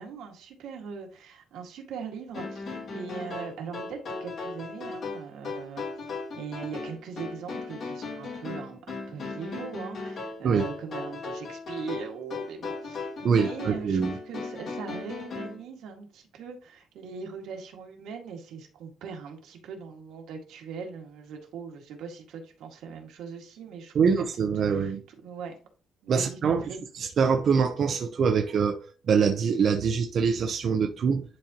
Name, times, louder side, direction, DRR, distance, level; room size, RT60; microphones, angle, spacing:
voice 1, 0.0-5.9 6.4-24.2 24.7-25.5 26.0-26.8, right 5 dB, 85° right, 1.9 m, -40 dB
sound 1, 2.3-15.6, left 3 dB, 50° left, 2.3 m, -37 dB
voice 2, 13.2-14.1 23.9-25.0 26.1-26.6 26.9-31.2, right 6 dB, 45° right, 0.7 m, -24 dB
10.5 x 4.3 x 3.0 m
cardioid pair, 155°, 0 cm